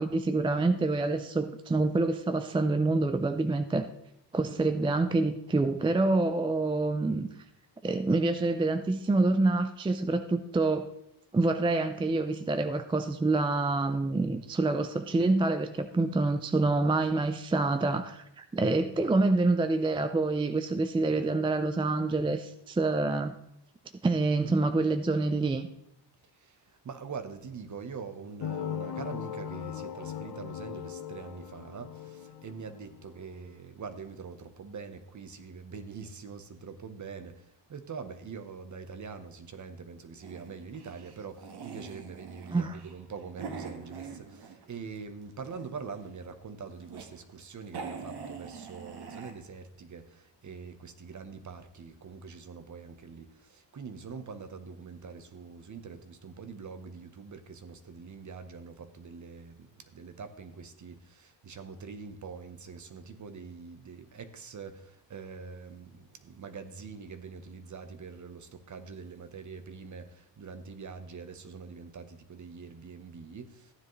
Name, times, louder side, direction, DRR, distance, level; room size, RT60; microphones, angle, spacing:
voice 1, 0.0-3.9 4.3-7.3 7.8-10.9 11.3-23.3 24.0-25.7 42.5-42.7, right 2 dB, 15° right, 9 dB, 0.3 m, -27 dB
voice 2, 26.4-73.7, right 5 dB, 40° right, 10 dB, 1.0 m, -44 dB
sound 1, 28.4-33.3, left 9 dB, 50° left, 0.7 m, -39 dB
sound 2, 40.2-44.8 45.2-46.0 46.5-47.1 47.4-47.5 47.7-49.3, right 5 dB, 60° right, 1.4 m, -44 dB
14.5 x 9.8 x 3.1 m, 0.79 s
cardioid pair, 130°, 44 cm